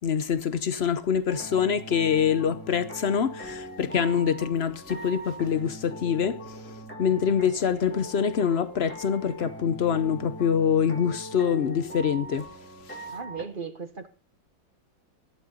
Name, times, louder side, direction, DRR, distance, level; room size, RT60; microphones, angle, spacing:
voice 1, 0.0-6.7 7.0-12.5, left 7 dB, 60° left, 0.6 m, -25 dB
sound 1, 1.3-13.4, right 1 dB, 5° left, 1.9 m, -41 dB
voice 2, 13.1-14.1, right 5 dB, 30° right, 1.2 m, -36 dB
15.5 x 11.0 x 3.9 m
omnidirectional pair, 2.1 m